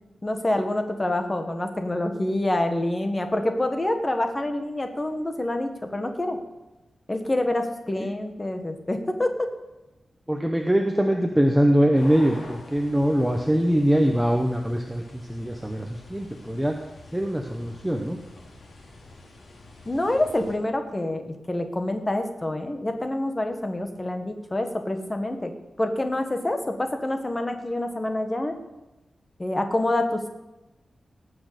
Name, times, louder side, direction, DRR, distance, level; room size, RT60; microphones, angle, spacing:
voice 1, 0.2-6.4 7.1-9.5 19.8-25.5 25.8-28.6 29.4-30.3, left 1 dB, 20° left, 6 dB, 1.2 m, -27 dB
voice 2, 10.3-16.8 17.1-18.2, equal, 5° right, 3 dB, 0.8 m, -23 dB
sound 1, 11.9-20.6, left 2 dB, 70° left, 2.9 m, -46 dB
18.0 x 6.3 x 6.7 m, 1.0 s
wide cardioid pair, 180°, 0 cm